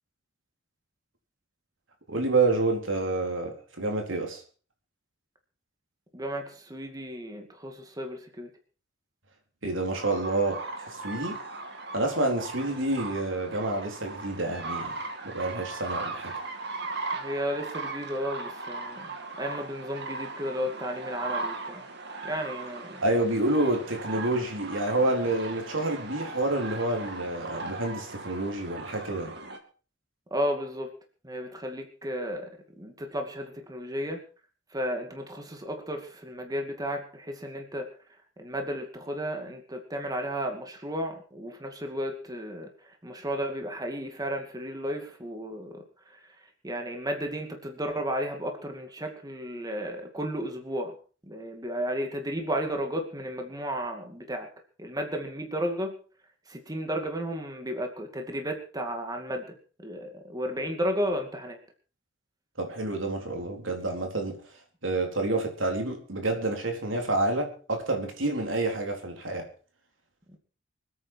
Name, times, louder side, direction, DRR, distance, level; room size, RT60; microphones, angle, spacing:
voice 1, 2.1-4.4 9.6-11.4 11.9-15.0 15.2-16.3 23.0-29.3 62.6-64.4 64.8-69.5, right 2 dB, 85° right, 3 dB, 4.0 m, -28 dB
voice 2, 6.1-8.5 17.1-19.1 19.4-21.8 22.2-23.0 30.3-30.9 31.2-34.2 34.7-37.9 38.4-42.7 43.0-45.8 46.6-50.9 51.3-54.5 54.8-55.9 56.5-59.6 59.8-61.6 70.3-70.4, equal, 20° right, 4 dB, 2.4 m, -33 dB
sound 1, 9.9-29.6, right 3 dB, 60° right, 2.5 m, -38 dB
25.5 x 9.3 x 4.7 m, 0.39 s
head